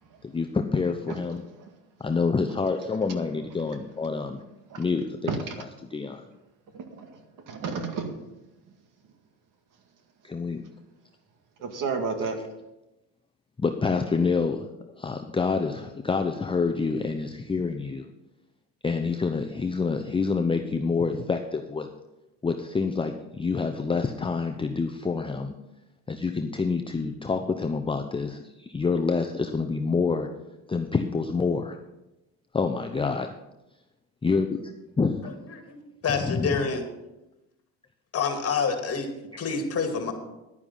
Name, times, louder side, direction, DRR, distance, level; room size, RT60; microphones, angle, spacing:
voice 1, 0.2-1.4 2.0-4.4 4.8-5.3 5.9-6.3 10.2-10.6 13.6-14.7 15.0-18.1 18.8-21.9 22.4-25.5 26.1-30.3 30.7-31.8 32.5-33.3 34.2-35.3 36.1-36.6 39.3-39.5, left 4 dB, 15° left, 5 dB, 0.7 m, -27 dB
voice 2, 6.7-7.2 7.5-8.2 11.6-12.4, right 5 dB, 60° right, 6 dB, 2.0 m, -31 dB
voice 3, 36.0-36.8 38.1-39.1 39.4-40.1, left 5 dB, 40° left, 5 dB, 2.2 m, -27 dB
11.0 x 9.6 x 5.6 m, 0.96 s
cardioid pair, 105°, 35 cm